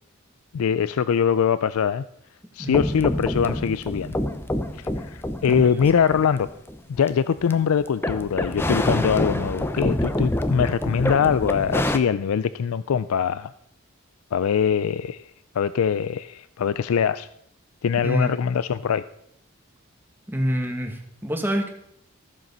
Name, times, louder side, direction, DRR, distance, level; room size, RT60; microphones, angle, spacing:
voice 1, 0.5-2.0 2.5-4.1 4.8-6.5 6.9-13.5 14.3-15.3 15.5-17.3 17.8-19.0, left 7 dB, 90° left, 15 dB, 0.4 m, -23 dB
sound 1, 2.7-7.5 7.9-12.0, left 1 dB, 10° left, 0.6 m, -27 dB
voice 2, 5.5-5.8 18.0-18.3 20.3-21.7, equal, 10° right, 3 dB, 1.5 m, -26 dB
14.0 x 7.7 x 5.4 m, 0.73 s
head